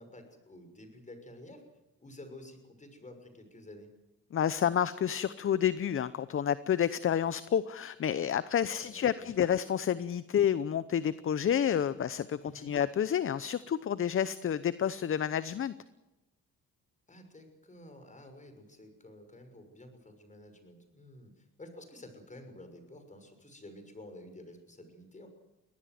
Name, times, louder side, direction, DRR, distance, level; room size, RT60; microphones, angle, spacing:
voice 1, 0.0-1.6 2.0-3.9 8.6-9.4 12.4-12.7 17.1-25.3, left 1 dB, 25° left, 7 dB, 6.4 m, -51 dB
voice 2, 4.3-15.7, left 9 dB, 45° left, 15 dB, 0.8 m, -29 dB
23.5 x 18.5 x 7.8 m, 1.0 s
cardioid pair, 90°, 30 cm